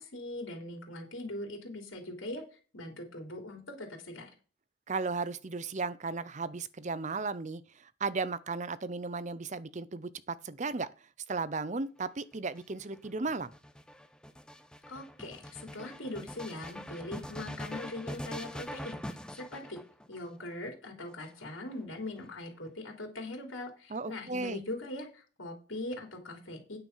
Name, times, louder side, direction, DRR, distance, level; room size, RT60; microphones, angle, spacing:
voice 1, 0.0-2.4 2.7-4.3 14.9-19.0 19.3-19.8 20.1-26.8, left 2 dB, 75° left, 3.3 m, -41 dB
voice 2, 4.9-10.9 11.3-13.5 23.9-24.6, right 4 dB, 35° right, 0.6 m, -35 dB
sound 1, 12.3-20.3 21.1-22.0, equal, 5° left, 0.7 m, -43 dB
9.2 x 7.1 x 5.5 m
head